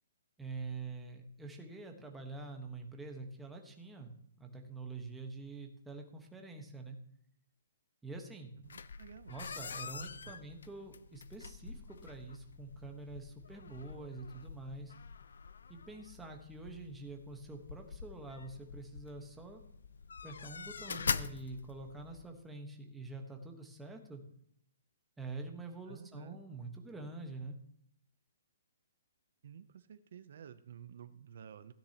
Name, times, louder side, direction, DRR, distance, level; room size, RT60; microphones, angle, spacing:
voice 1, 0.4-4.1 4.4-7.0 8.0-8.5 9.3-14.9 15.7-19.6 20.2-24.2 25.2-27.6, right 3 dB, 5° right, 2 dB, 1.2 m, -46 dB
sound 1, 8.6-22.3, left 5 dB, 80° left, 0.6 m, -44 dB
voice 2, 8.6-9.4 10.2-10.4 25.9-26.4 29.4-31.7, right 8 dB, 55° right, 12 dB, 0.6 m, -52 dB
16.0 x 9.9 x 2.9 m, 0.70 s
hypercardioid pair, 170°, 0 cm